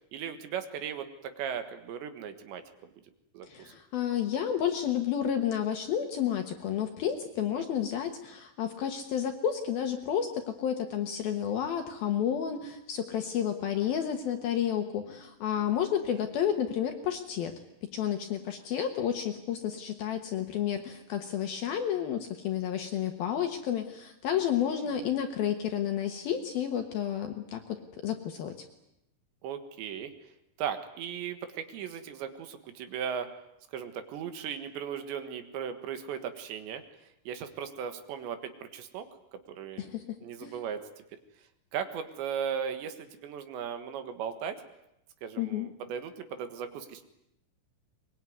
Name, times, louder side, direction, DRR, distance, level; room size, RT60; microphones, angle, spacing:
voice 1, 0.1-2.6 3.3-3.7 7.5-7.7 16.1-16.2 24.3-25.1 29.4-30.1 30.6-33.3 33.7-36.8 37.3-39.1 39.3-39.9 40.2-40.9 41.7-44.6 45.2-47.0, right 8 dB, 70° right, 9 dB, 3.6 m, -37 dB
voice 2, 3.5-17.5 17.9-27.8 28.0-28.5 39.8-40.5 45.4-45.7, left 9 dB, 65° left, 6 dB, 2.5 m, -31 dB
23.0 x 22.0 x 9.5 m, 0.83 s
omnidirectional pair, 5.6 m